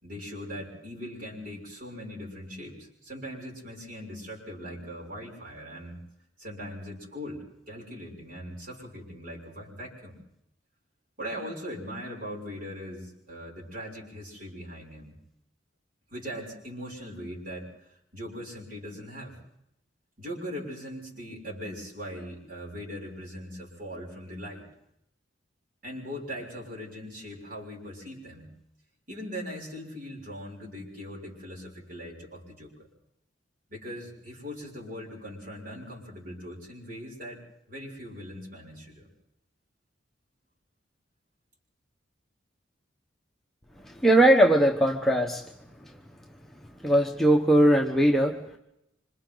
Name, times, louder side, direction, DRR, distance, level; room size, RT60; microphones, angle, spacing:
voice 1, 0.0-6.0 6.4-10.2 11.2-15.1 16.1-19.4 20.2-24.7 25.8-28.5 29.1-32.7 33.7-37.4 37.7-39.1, equal, 50° right, -2 dB, 6.7 m, -40 dB
voice 2, 43.8-45.5 45.8-46.0 46.8-48.6, right 1 dB, ahead, 0 dB, 1.2 m, -21 dB
27.0 x 26.0 x 4.0 m, 0.80 s
head